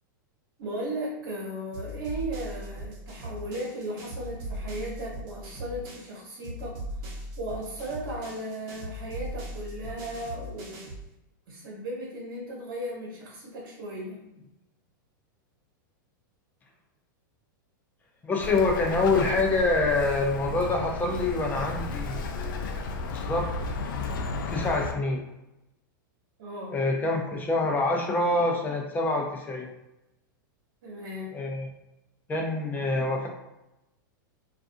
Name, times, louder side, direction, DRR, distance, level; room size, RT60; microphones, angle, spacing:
voice 1, 0.6-6.8 7.4-10.9 11.5-14.2 26.4-26.8 30.8-31.4, right 1 dB, 75° right, -4 dB, 0.9 m, -36 dB
sound 1, 1.7-6.2 6.4-11.1, equal, 45° right, 0.9 m, -39 dB
voice 2, 18.2-23.5 24.5-25.2 26.7-29.7 31.3-31.7 32.3-33.3, left 2 dB, 15° left, 1 dB, 0.5 m, -26 dB
Bird, 18.4-24.9, left 3 dB, 75° left, 0.4 m, -33 dB
2.4 x 2.3 x 2.6 m, 0.92 s
hypercardioid pair, 130°, 11 cm